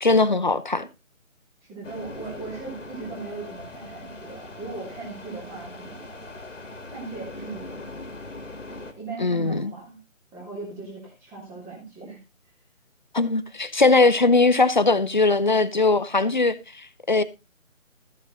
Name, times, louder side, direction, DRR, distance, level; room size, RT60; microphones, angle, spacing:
voice 1, 0.0-0.9 9.2-9.7 13.1-17.2, left 3 dB, 35° left, 0.7 m, -20 dB
voice 2, 1.7-6.0 6.9-7.9 8.7-10.0 10.3-12.2, right 3 dB, 5° right, 3.1 m, -38 dB
sound 1, 1.8-8.9, left 2 dB, 65° left, 2.4 m, -40 dB
14.0 x 7.3 x 4.0 m
figure-of-eight pair, 160°, 40 cm